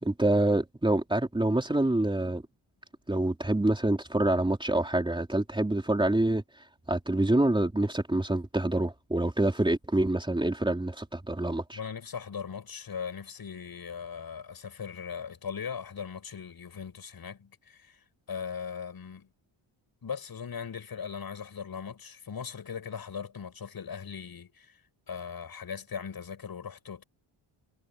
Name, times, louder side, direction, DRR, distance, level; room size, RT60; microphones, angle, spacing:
voice 1, 0.0-2.4 3.1-6.4 6.9-11.8, right 1 dB, 10° right, 3.8 m, -26 dB
voice 2, 11.7-18.0 18.3-19.3 20.0-24.8 25.1-27.0, left 6 dB, 45° left, 7.5 m, -39 dB
wide cardioid pair, 160°, 50 cm